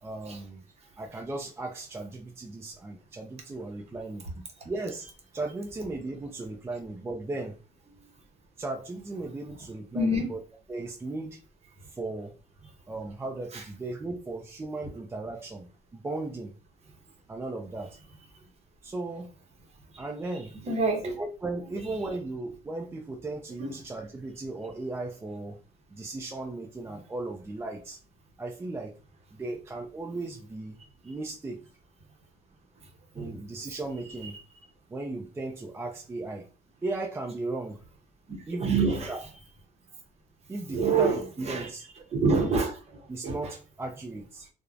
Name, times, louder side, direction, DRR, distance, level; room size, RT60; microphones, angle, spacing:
voice 1, 0.0-0.6 1.0-4.3 4.6-5.1 5.3-7.6 7.9-8.1 8.6-10.4 10.7-11.4 11.9-12.3 12.9-16.5 17.3-18.0 18.8-19.3 20.0-20.5 21.0-25.6 25.9-28.0 28.4-28.9 29.3-30.8 31.0-31.6 33.1-34.4 34.9-36.5 36.8-37.8 38.5-39.2 40.5-41.8 43.1-44.5, right 2 dB, 15° right, 1 dB, 0.4 m, -36 dB
voice 2, 9.9-10.4 11.8-11.9 12.6-12.7 13.5-13.7 14.8-14.9 19.9-20.1 20.6-21.2 21.8-21.9 23.6-23.7 26.9-27.0 32.8-33.4 34.2-34.3 38.3-39.3 40.7-41.7 42.1-43.5, right 3 dB, 40° right, 4 dB, 0.8 m, -28 dB
3.0 x 2.1 x 2.4 m, 0.34 s
cardioid pair, 110°, 17 cm